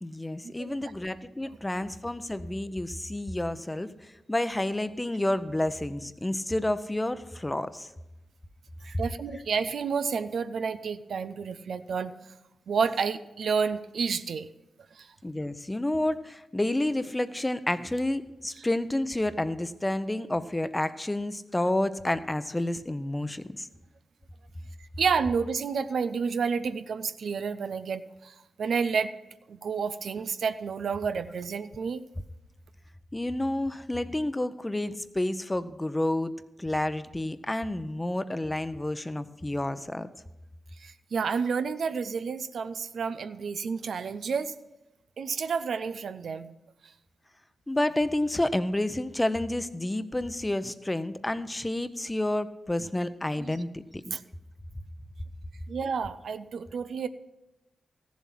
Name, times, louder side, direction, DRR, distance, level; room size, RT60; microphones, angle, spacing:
voice 1, 0.0-7.9 15.2-23.7 33.1-36.3 36.6-40.1 47.7-54.1, left 1 dB, 20° left, 13 dB, 0.7 m, -30 dB
voice 2, 8.8-12.1 12.7-14.5 14.9-15.1 25.0-29.1 29.5-32.0 40.8-44.5 45.2-46.5 53.4-53.5 54.1-54.2 55.7-57.1, right 5 dB, 75° right, 11 dB, 0.5 m, -30 dB
14.5 x 7.3 x 5.8 m, 0.96 s
supercardioid pair, 40°, 0 cm